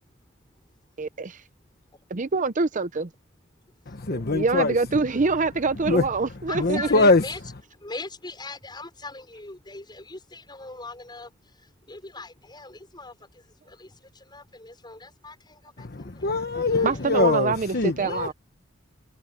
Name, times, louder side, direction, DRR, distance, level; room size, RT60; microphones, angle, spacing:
voice 1, 1.0-1.4 2.1-3.1 4.1-7.1 16.8-18.3, right 4 dB, 40° right, 0.7 m, -25 dB
voice 2, 3.9-4.7 5.8-6.0 6.5-7.2 15.8-18.3, left 3 dB, 50° left, 1.1 m, -23 dB
voice 3, 6.5-7.4 7.8-11.3 11.9-13.1 13.7-13.9 14.3-16.3 16.7-17.1 18.0-18.3, left 3 dB, 20° left, 5.2 m, -40 dB
head